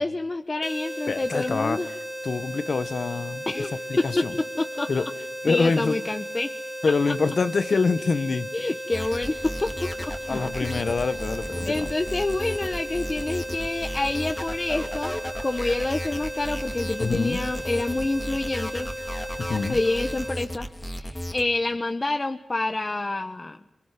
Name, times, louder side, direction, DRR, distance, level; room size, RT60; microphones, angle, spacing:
voice 1, 0.0-1.9 3.5-4.3 4.6-4.9 5.5-6.5 7.1-7.2 8.5-10.3 10.6-10.8 11.7-15.2 15.4-18.9 19.7-23.6, left 2 dB, 35° left, 7 dB, 1.3 m, -28 dB
sound 1, 0.6-20.3, equal, 25° right, 3.5 m, -35 dB
voice 2, 1.1-1.8 2.2-3.4 4.0-4.3 4.9-5.0 5.4-6.0 6.8-8.5 10.3-11.9 17.0-17.4 19.4-19.8, left 4 dB, 65° left, 13 dB, 1.4 m, -25 dB
sound 2, 8.9-21.4, equal, 15° left, 2.7 m, -34 dB
27.0 x 23.5 x 9.1 m, 0.93 s
cardioid pair, 55°, 0 cm